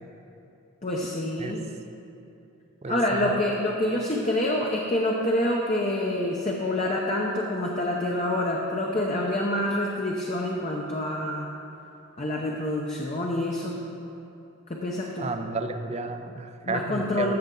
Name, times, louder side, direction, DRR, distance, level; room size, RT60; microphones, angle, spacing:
voice 1, 0.8-1.6 2.9-11.5 12.2-13.8 14.7-15.3 16.6-17.4, left 1 dB, 30° left, -2 dB, 0.7 m, -27 dB
voice 2, 2.8-3.4 15.2-17.4, right 3 dB, 30° right, 7 dB, 0.5 m, -32 dB
14.5 x 7.1 x 3.8 m, 2.8 s
head